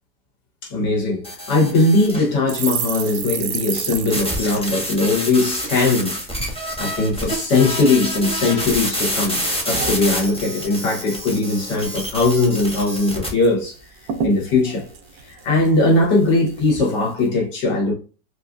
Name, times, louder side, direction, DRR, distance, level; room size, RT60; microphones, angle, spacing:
voice 1, 0.6-6.2 6.8-13.8 14.2-14.8 15.2-17.9, left 2 dB, 80° left, 2.0 m, -19 dB
sound 1, 1.2-2.3 4.1-13.3, equal, 5° left, 0.7 m, -27 dB
sound 2, 2.5-6.0 6.3-6.5 6.8-7.4 8.0-8.8 9.1-10.7 11.0-11.3 11.5-12.1 12.5-12.6 12.8-13.5 13.8-13.9 14.1-16.0 16.5-16.8, right 7 dB, 70° right, 1.0 m, -31 dB
4.6 x 2.6 x 2.3 m
omnidirectional pair, 1.8 m